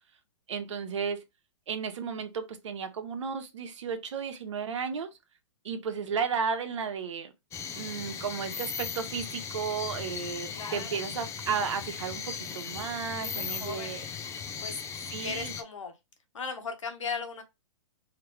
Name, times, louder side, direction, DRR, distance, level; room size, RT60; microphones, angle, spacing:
voice 1, 0.5-1.2 1.7-5.1 5.6-7.3 7.7-14.1 15.1-15.5, right 6 dB, 75° right, 1.2 m, -33 dB
sound 1, 7.5-15.6, left 6 dB, 20° left, 0.6 m, -38 dB
voice 2, 10.5-11.0 13.1-14.1 14.6-14.8 15.2-15.9 16.3-17.4, left 5 dB, 90° left, 1.4 m, -37 dB
4.8 x 3.0 x 3.2 m
hypercardioid pair, 135°, 16 cm